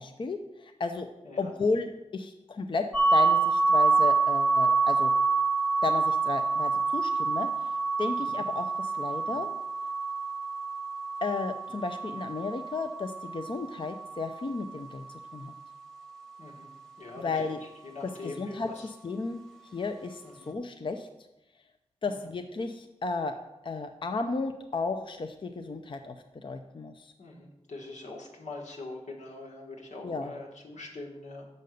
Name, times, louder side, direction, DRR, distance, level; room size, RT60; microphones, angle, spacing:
voice 1, 0.0-1.1 1.4-2.8 3.1-5.1 5.8-9.5 11.2-15.0 15.3-15.5 17.2-17.6 18.2-19.4 19.7-21.1 22.0-23.3 23.6-27.1 30.0-30.3, left 3 dB, 45° left, 6 dB, 0.5 m, -33 dB
sound 1, 2.9-14.7, right 4 dB, 5° left, 1.0 m, -27 dB
voice 2, 16.4-16.7 17.0-17.3 17.8-18.9 20.2-20.5 22.0-22.1 27.2-31.5, left 2 dB, 90° left, -1 dB, 1.6 m, -43 dB
6.7 x 5.2 x 6.5 m, 0.94 s
wide cardioid pair, 100°, 12 cm